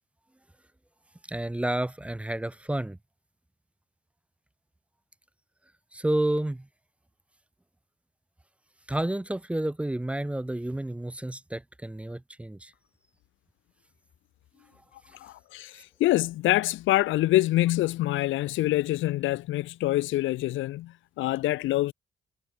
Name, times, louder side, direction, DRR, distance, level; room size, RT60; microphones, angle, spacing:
voice 1, 1.3-3.0 5.9-6.7 8.9-12.7, right 1 dB, 5° right, 0.4 m, -30 dB
voice 2, 15.2-21.9, left 16 dB, 80° left, 0.6 m, -26 dB
cardioid pair, 90°, 20 cm